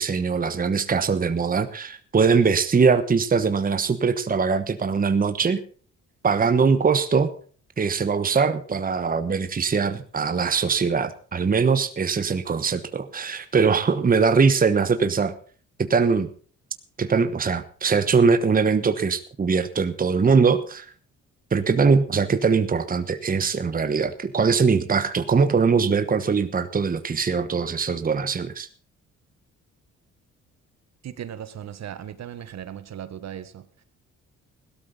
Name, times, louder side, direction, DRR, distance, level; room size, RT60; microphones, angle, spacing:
voice 1, 0.0-5.6 6.2-7.3 7.8-15.3 15.8-16.3 17.0-20.9 21.5-28.7, right 5 dB, 30° right, 10 dB, 1.2 m, -21 dB
voice 2, 31.0-33.8, right 10 dB, 60° right, 12 dB, 1.4 m, -37 dB
17.0 x 12.5 x 4.1 m, 0.42 s
cardioid pair, 90°, 30 cm